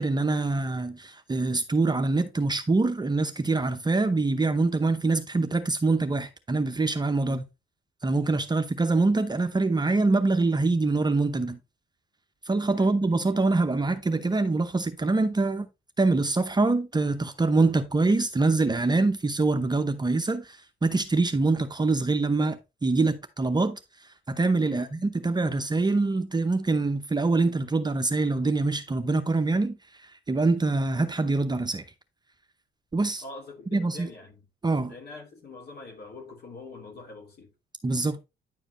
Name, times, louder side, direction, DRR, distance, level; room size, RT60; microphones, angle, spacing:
voice 1, 0.0-7.4 8.0-11.6 12.4-15.7 16.0-23.8 24.3-31.8 32.9-33.2 33.7-34.1 34.6-34.9 37.8-38.2, right 3 dB, 20° right, 0.8 m, -25 dB
voice 2, 33.2-34.5 34.9-37.5, left 3 dB, 55° left, 3.6 m, -44 dB
9.9 x 4.9 x 3.1 m
cardioid pair, 90°, 20 cm